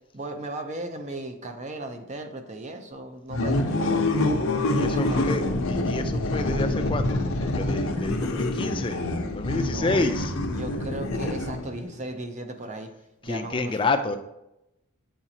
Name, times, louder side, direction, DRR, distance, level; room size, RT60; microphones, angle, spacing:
voice 1, 0.1-4.1 4.8-5.2 9.4-10.1 10.5-12.9 13.2-13.8 14.1-14.2, right 2 dB, 35° right, 6 dB, 0.6 m, -36 dB
sound 1, 3.3-11.9, left 2 dB, 85° left, 0.7 m, -26 dB
voice 2, 4.7-9.0 9.3-10.3 13.2-14.2, left 3 dB, 25° left, 6 dB, 0.4 m, -29 dB
7.3 x 4.9 x 2.8 m, 0.89 s
head